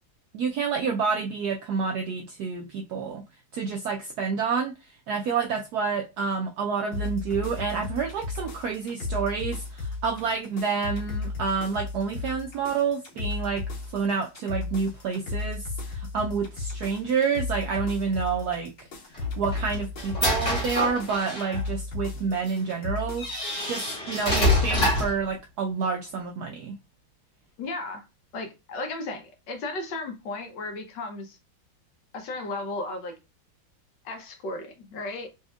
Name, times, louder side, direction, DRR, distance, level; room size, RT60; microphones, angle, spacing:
voice 1, 0.3-3.2 3.5-4.7 5.1-13.6 13.9-18.7 19.4-23.3 23.6-26.8, right 5 dB, 75° right, 0.9 m, -28 dB
sound 1, 6.9-23.6, left 3 dB, 90° left, 2.0 m, -35 dB
sound 2, 19.1-21.6 22.5-22.6 23.2-25.2, left 1 dB, 20° left, 1.6 m, -26 dB
voice 2, 27.6-28.0 28.3-31.4 32.1-33.1 34.0-35.3, left 2 dB, 65° left, 1.4 m, -35 dB
4.2 x 3.2 x 2.3 m
omnidirectional pair, 2.2 m